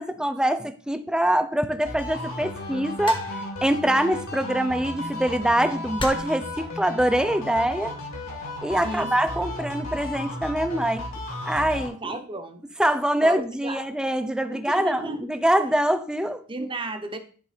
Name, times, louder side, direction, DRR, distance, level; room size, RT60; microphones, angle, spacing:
voice 1, 0.0-7.9 8.6-11.1 11.5-12.2 12.8-16.4, right 1 dB, 5° right, 10 dB, 0.5 m, -24 dB
sound 1, 1.8-11.9, left 1 dB, 70° left, 2.5 m, -34 dB
sound 2, 3.1-3.6 4.8-5.0 6.0-6.5 7.4-7.7, left 2 dB, 25° left, 1.1 m, -34 dB
voice 2, 8.8-9.1 12.0-12.6 13.2-13.8 14.5-15.2 16.5-17.2, right 2 dB, 25° right, 7 dB, 0.9 m, -33 dB
10.5 x 3.8 x 5.0 m, 0.43 s
head